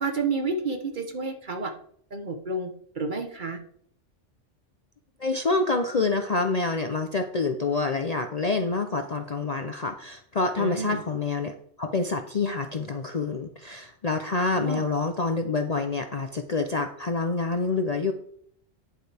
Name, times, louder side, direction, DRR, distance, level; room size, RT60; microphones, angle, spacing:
voice 1, 0.0-1.7 2.1-2.7 3.0-3.6 10.6-11.0 14.5-14.8, right 3 dB, 45° right, 5 dB, 1.1 m, -30 dB
voice 2, 5.2-18.1, left 3 dB, 40° left, 5 dB, 0.6 m, -27 dB
10.5 x 8.0 x 3.4 m, 0.62 s
omnidirectional pair, 1.3 m